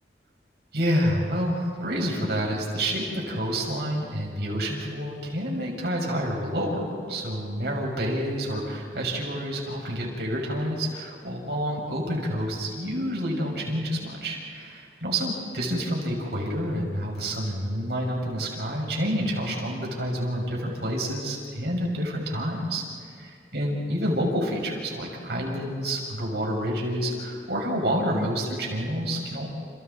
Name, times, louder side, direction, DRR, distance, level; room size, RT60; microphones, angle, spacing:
voice 1, 0.7-22.8 23.2-29.5, equal, 65° right, -1 dB, 5.5 m, -28 dB
29.5 x 29.0 x 4.1 m, 2.2 s
head